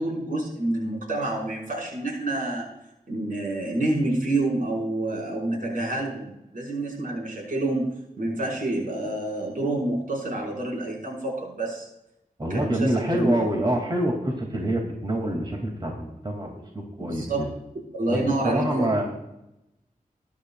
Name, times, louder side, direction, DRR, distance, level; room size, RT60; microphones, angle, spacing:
voice 1, 0.0-2.7 3.1-7.8 8.2-11.9 12.5-13.3 17.0-17.4 17.9-18.9, right 2 dB, 75° right, -2 dB, 5.3 m, -28 dB
voice 2, 12.4-17.5 18.1-18.2 18.4-19.0, right 1 dB, 35° right, 1 dB, 2.6 m, -26 dB
21.5 x 10.5 x 2.4 m, 0.87 s
wide cardioid pair, 85°, 14 cm